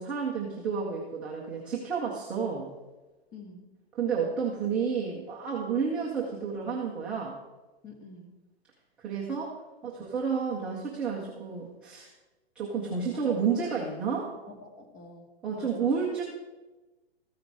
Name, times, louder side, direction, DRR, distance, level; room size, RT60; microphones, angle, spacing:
voice 1, 0.0-2.7 4.0-7.4 9.0-9.5 9.8-12.1 12.6-14.3 15.4-16.2, right 6 dB, 5° right, -5 dB, 0.3 m, -30 dB
voice 2, 3.3-3.7 7.8-8.3 12.8-13.3 14.5-16.0, left 3 dB, 25° left, 3 dB, 2.0 m, -48 dB
14.0 x 9.2 x 4.6 m, 1.1 s
hypercardioid pair, 150°, 32 cm